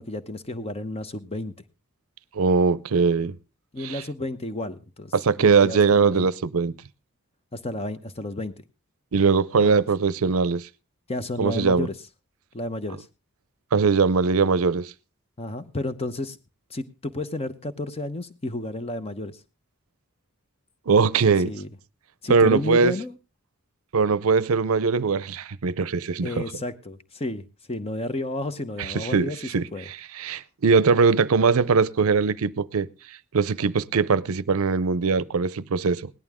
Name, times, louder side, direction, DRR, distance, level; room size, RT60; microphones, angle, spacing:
voice 1, 0.0-1.5 3.2-3.3 3.7-6.3 7.5-8.5 9.6-9.8 11.1-11.9 12.5-13.1 15.4-16.4 16.7-19.4 21.2-21.7 22.2-23.1 26.2-29.4 29.7-29.8, left 2 dB, 30° left, 0.9 m, -32 dB
voice 2, 2.3-3.4 3.8-4.0 5.1-6.7 9.1-10.7 11.4-11.9 13.7-14.9 20.9-21.5 22.3-22.9 23.9-26.4 28.8-32.9 33.3-36.1, right 5 dB, 75° right, 0.6 m, -21 dB
18.0 x 11.0 x 3.6 m
head